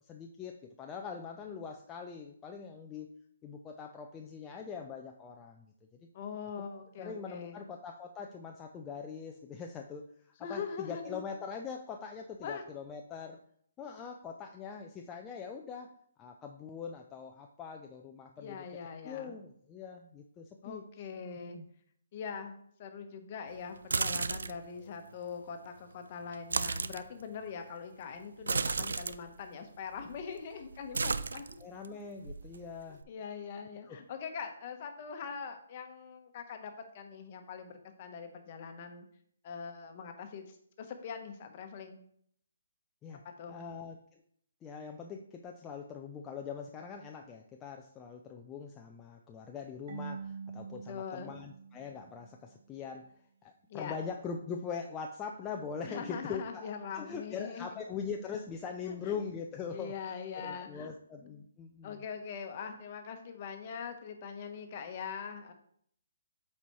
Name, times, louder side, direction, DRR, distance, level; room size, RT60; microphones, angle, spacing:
voice 1, 0.1-3.1 3.4-5.7 7.0-13.4 13.8-15.9 16.2-18.6 19.0-20.8 21.4-21.7 24.8-24.9 31.6-33.0 33.8-34.0 43.0-43.2 43.5-44.0 44.6-53.1 53.4-59.9 60.3-62.0, left 6 dB, 15° left, 2 dB, 0.4 m, -42 dB
voice 2, 6.1-7.6 10.4-11.2 12.4-12.6 18.4-19.3 20.6-21.6 22.1-31.7 32.9-39.1 39.4-42.0 43.4-43.6 50.9-51.3 53.7-54.0 55.8-57.8 58.8-59.2 59.7-60.9 61.3-61.4 61.8-65.5, left 6 dB, 40° left, 6 dB, 1.0 m, -42 dB
sound 1, 23.8-24.7 26.3-27.0 28.4-29.2 30.0-30.4 30.6-31.9 32.2-33.0, right 4 dB, 75° right, 0.3 m, -33 dB
Marimba xylophone / Wood, 49.9-52.6, right 5 dB, 55° right, 1.2 m, -45 dB
8.0 x 4.2 x 3.1 m, 0.65 s
hypercardioid pair, 150°, 0 cm